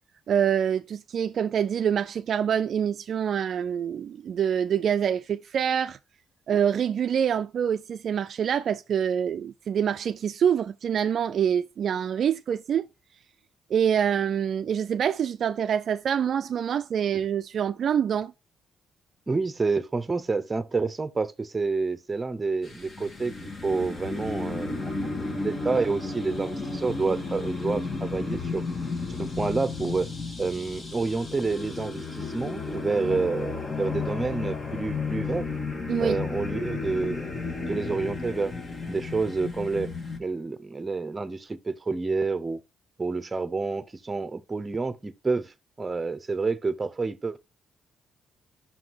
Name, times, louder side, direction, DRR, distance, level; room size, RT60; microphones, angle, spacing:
voice 1, 0.3-6.0 6.5-12.9 13.7-18.3 35.9-36.2, right 8 dB, 60° right, 0.3 m, -26 dB
voice 2, 19.3-28.6 29.1-30.1 30.4-35.5 36.0-38.5 38.9-39.9 40.2-42.6 43.0-47.4, right 4 dB, 25° right, 0.7 m, -29 dB
sound 1, 22.6-40.2, left 4 dB, 35° left, 1.5 m, -33 dB
6.0 x 3.8 x 4.6 m
cardioid pair, 90°, 0 cm